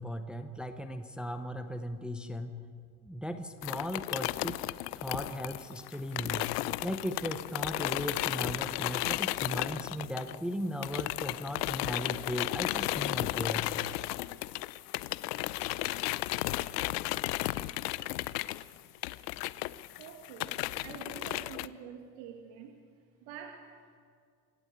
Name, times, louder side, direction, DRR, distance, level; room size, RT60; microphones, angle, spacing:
voice 1, 0.0-2.5 3.0-4.6 5.0-6.5 6.8-13.6, equal, ahead, 7 dB, 0.6 m, -37 dB
sound 1, 3.6-10.5 10.8-21.7, left 18 dB, 65° left, 0.7 m, -34 dB
voice 2, 20.0-22.8 23.2-24.0, right 7 dB, 60° right, 3 dB, 2.2 m, -47 dB
26.5 x 12.5 x 8.1 m, 2.1 s
supercardioid pair, 145°, 49 cm